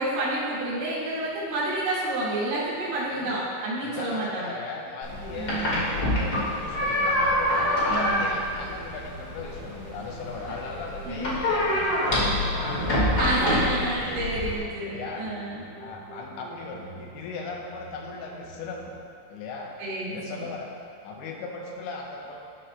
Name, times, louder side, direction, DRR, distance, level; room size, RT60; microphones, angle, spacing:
voice 1, 0.0-4.5 5.3-5.7 7.9-8.3 11.1-11.4 13.2-15.6 19.8-20.5, right 1 dB, 85° right, -8 dB, 4.4 m, -29 dB
voice 2, 3.8-12.7 13.2-14.2 14.8-15.3 15.8-18.9 19.3-19.8 20.1-20.7 21.0-22.4, left 4 dB, 80° left, 0 dB, 3.1 m, -38 dB
sound 1, 5.0-14.6, left 1 dB, 65° left, 0.9 m, -26 dB
sound 2, 5.3-19.0, right 3 dB, 50° right, 3.3 m, -46 dB
13.5 x 6.5 x 2.2 m, 2.3 s
omnidirectional pair, 5.2 m